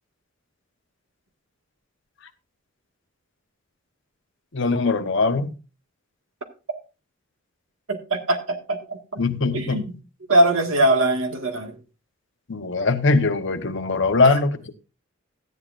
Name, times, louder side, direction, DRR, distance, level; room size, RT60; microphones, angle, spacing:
voice 1, 4.5-5.5 9.2-9.8 12.5-14.5, left 3 dB, 60° left, 1.0 m, -21 dB
voice 2, 7.9-9.0 9.5-9.9 10.3-11.8 14.3-14.4, right 1 dB, 85° right, 1.7 m, -21 dB
15.0 x 11.0 x 2.5 m
head